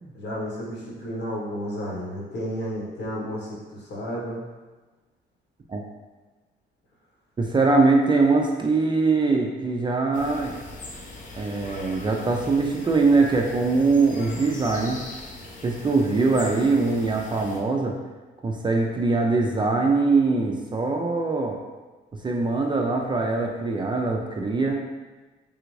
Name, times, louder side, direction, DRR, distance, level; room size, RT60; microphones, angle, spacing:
voice 1, 0.1-4.4, equal, 60° left, -5 dB, 1.2 m, -32 dB
voice 2, 7.4-10.6 11.3-15.0 15.6-18.0 18.4-21.6 22.2-24.8, right 3 dB, 25° right, 1 dB, 0.3 m, -22 dB
sound 1, 10.1-17.6, left 2 dB, 40° left, 0.6 m, -41 dB
3.4 x 2.4 x 3.1 m, 1.3 s
cardioid pair, 90°, 20 cm